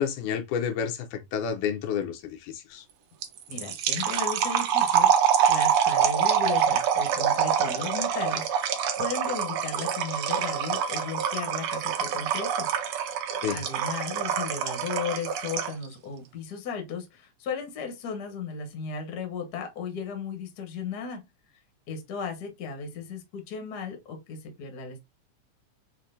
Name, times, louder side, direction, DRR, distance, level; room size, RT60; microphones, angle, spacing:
voice 1, 0.0-2.8 13.4-13.6, left 7 dB, 90° left, 2.3 m, -30 dB
sound 1, 3.2-15.8, right 8 dB, 90° right, 1.2 m, -25 dB
voice 2, 3.5-12.7 13.5-21.2 21.9-25.0, left 5 dB, 50° left, 1.2 m, -35 dB
5.7 x 2.7 x 2.6 m
omnidirectional pair, 3.5 m